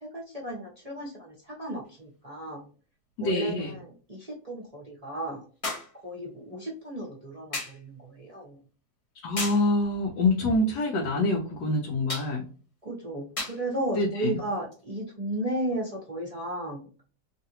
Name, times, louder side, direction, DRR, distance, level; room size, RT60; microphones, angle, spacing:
voice 1, 0.0-2.7 3.2-5.4 6.0-8.6 12.8-16.9, right 1 dB, 30° right, -4 dB, 0.8 m, -34 dB
sound 1, 1.8-1.9 5.6-6.0 7.5-7.8 9.4-9.7 12.1-12.3 13.4-13.6 14.7-14.8, left 2 dB, 40° left, 0.4 m, -34 dB
voice 2, 3.2-3.8 9.2-12.4 14.0-14.4, left 2 dB, 80° left, 0 dB, 1.3 m, -26 dB
3.2 x 2.5 x 2.8 m, 0.39 s
omnidirectional pair, 1.8 m